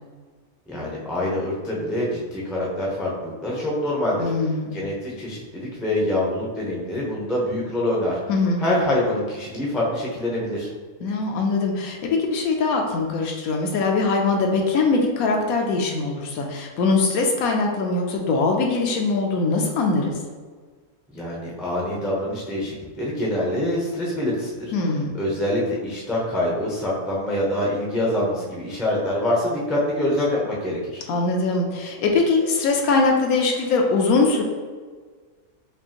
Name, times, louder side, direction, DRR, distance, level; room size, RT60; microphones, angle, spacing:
voice 1, 0.7-4.3 4.7-8.2 8.6-10.7 21.1-24.7 25.1-31.0, left 1 dB, ahead, -5 dB, 0.4 m, -25 dB
voice 2, 4.2-4.8 8.3-8.6 11.0-20.1 24.7-25.2 31.1-34.4, left 3 dB, 75° left, 1 dB, 1.1 m, -22 dB
5.3 x 2.5 x 2.9 m, 1.5 s
omnidirectional pair, 1.6 m